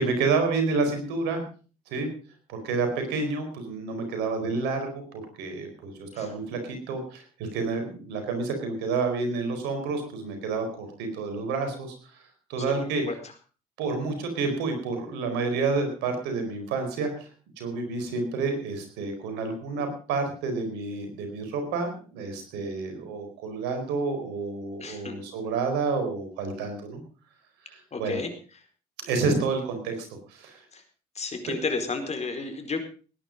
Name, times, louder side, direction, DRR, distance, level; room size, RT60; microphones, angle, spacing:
voice 1, 0.0-1.4 1.9-2.1 2.5-12.2 12.5-13.0 13.8-17.3 17.6-27.0 27.7-28.2 29.0-30.6 31.5-31.6, right 4 dB, 80° right, 6 dB, 4.6 m, -29 dB
voice 2, 24.8-25.2 27.9-28.6 30.7-30.8 31.1-32.8, left 4 dB, 40° left, 6 dB, 4.5 m, -32 dB
18.5 x 10.5 x 5.2 m, 0.38 s
supercardioid pair, 60°, 17 cm